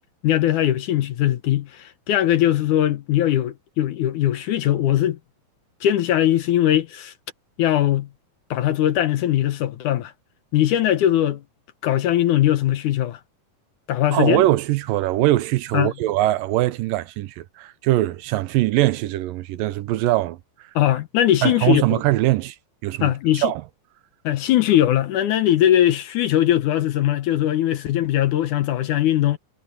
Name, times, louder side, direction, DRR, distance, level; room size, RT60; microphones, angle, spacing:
voice 1, 0.2-5.2 5.8-7.1 7.6-8.1 8.5-10.1 10.5-11.4 11.8-13.2 13.9-14.4 15.7-15.9 20.8-22.0 23.0-23.5 24.2-29.4, left 12 dB, 70° left, 2.3 m, -20 dB
voice 2, 14.1-20.7 21.4-22.6 22.8-23.1 23.4-23.6, right 16 dB, 80° right, 2.3 m, -22 dB
omnidirectional pair, 4.1 m